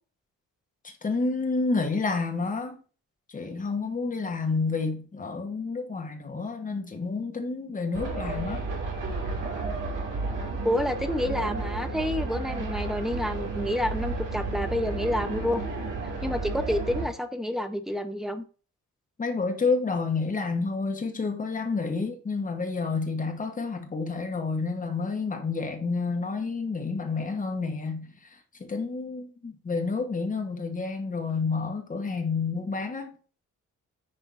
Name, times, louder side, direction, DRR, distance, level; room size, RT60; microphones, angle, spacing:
voice 1, 1.0-2.8 3.3-8.6 19.2-33.1, left 4 dB, 25° left, 1.3 m, -29 dB
sound 1, 7.9-17.0, right 3 dB, 85° right, 2.6 m, -32 dB
voice 2, 10.6-15.6 16.2-18.4, left 1 dB, ahead, 0.6 m, -29 dB
10.0 x 3.6 x 4.2 m
wide cardioid pair, 175°, 31 cm